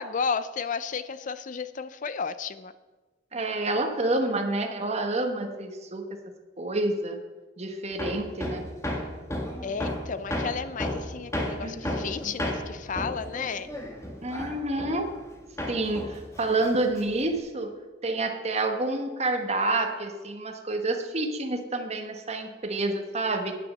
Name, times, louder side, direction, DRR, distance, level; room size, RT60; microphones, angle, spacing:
voice 1, 0.0-2.7 9.6-13.7, left 5 dB, 45° left, 13 dB, 0.5 m, -33 dB
voice 2, 3.3-6.2 6.6-7.2 7.6-8.6 11.6-11.9 14.2-15.1 15.7-17.7 18.0-23.6, right 2 dB, 35° right, 5 dB, 1.3 m, -28 dB
Hammer, 8.0-15.3 15.6-17.3, left 1 dB, 15° left, 1.6 m, -33 dB
9.9 x 9.2 x 6.4 m, 1.2 s
head